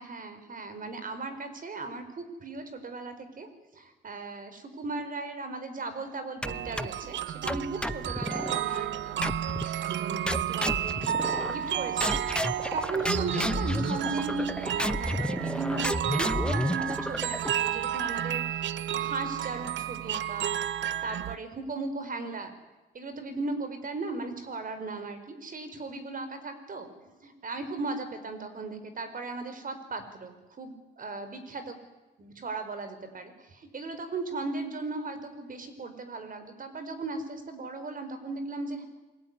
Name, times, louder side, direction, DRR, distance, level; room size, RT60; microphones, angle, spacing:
voice 1, 0.0-3.5 3.7-9.3 9.8-11.0 11.5-12.2 12.7-20.5 21.0-22.5 22.9-31.8 32.2-38.8, right 3 dB, 45° right, 9 dB, 5.1 m, -37 dB
sound 1, 6.4-7.1 7.5-8.6 9.2-9.8 10.3-11.7 12.0-17.7, left 1 dB, 5° left, 0.8 m, -32 dB
sound 2, 6.4-21.4, right 10 dB, 70° right, 0.9 m, -32 dB
27.5 x 20.5 x 9.9 m, 1.1 s
cardioid pair, 90°, 20 cm